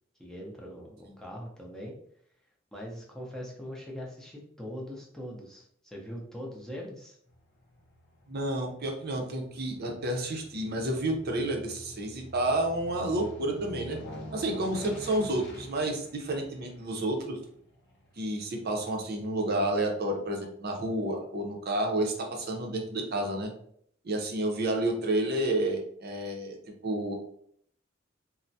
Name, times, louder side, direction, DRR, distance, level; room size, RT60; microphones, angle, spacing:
voice 1, 0.2-1.9 2.7-7.2, equal, 5° left, -2 dB, 0.6 m, -41 dB
Aircraft, 7.3-19.8 20.2-20.3, equal, 60° left, 0.6 m, -47 dB
voice 2, 8.3-14.0 14.3-17.4 18.2-23.5 24.0-26.6 26.8-27.1, right 1 dB, 55° right, 2 dB, 0.6 m, -30 dB
3.3 x 2.0 x 2.6 m, 0.66 s
head